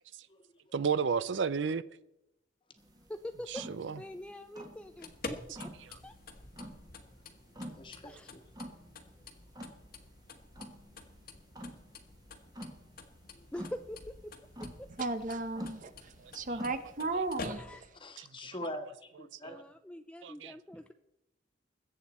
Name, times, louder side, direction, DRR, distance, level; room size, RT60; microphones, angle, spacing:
voice 1, 0.7-1.8 3.5-4.0 5.8-6.0 19.4-19.6 20.2-20.5, right 6 dB, 70° right, 17 dB, 0.5 m, -32 dB
sound 1, 2.8-17.5, equal, 20° right, 1.6 m, -50 dB
voice 2, 3.1-3.7 4.0-5.7 6.0-6.2 8.0-8.3 13.5-14.0 14.2-14.3 14.6-14.9 17.5-17.9 19.4-20.9, left 1 dB, 5° left, 8 dB, 0.4 m, -44 dB
sound 2, 4.8-18.0, left 3 dB, 50° left, 1.3 m, -49 dB
voice 3, 7.8-8.4 13.3-13.4 18.0-19.5, left 1 dB, 25° left, 6 dB, 1.4 m, -43 dB
voice 4, 15.0-15.9 16.3-17.6, right 3 dB, 45° right, 11 dB, 0.9 m, -34 dB
21.0 x 8.1 x 4.3 m, 0.87 s
head